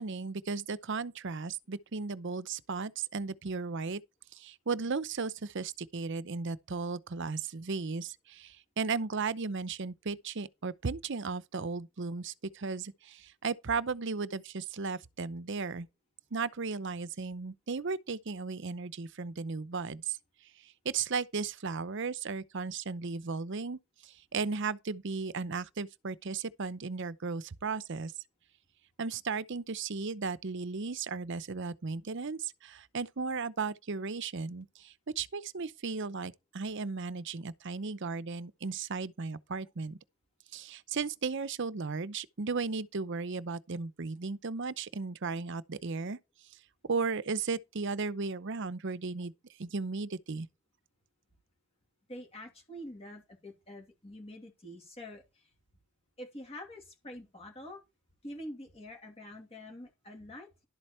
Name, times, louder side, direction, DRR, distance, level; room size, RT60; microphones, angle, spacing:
voice 1, 0.0-4.0 4.3-15.9 16.3-20.2 20.8-28.1 29.0-40.0 40.5-46.2 46.9-49.3 49.6-50.5, right 4 dB, 55° right, 0.7 m, -35 dB
voice 2, 52.1-55.5 56.2-57.8 58.2-60.5, left 1 dB, 30° left, 2.6 m, -46 dB
12.0 x 7.9 x 4.4 m
head